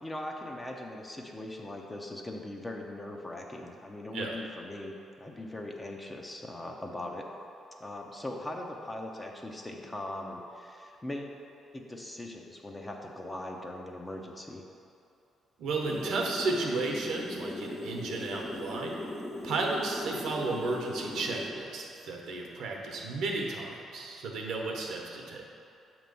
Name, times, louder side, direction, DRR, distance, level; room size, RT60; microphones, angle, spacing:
voice 1, 0.0-7.3 7.8-11.4 11.7-14.6, left 1 dB, 15° left, 1 dB, 0.7 m, -40 dB
voice 2, 15.6-18.9 19.4-25.4, right 3 dB, 75° right, 0 dB, 0.9 m, -33 dB
sound 1, 15.8-21.5, left 1 dB, 50° left, 1.4 m, -38 dB
7.4 x 3.0 x 5.3 m, 2.6 s
cardioid pair, 90°, 0 cm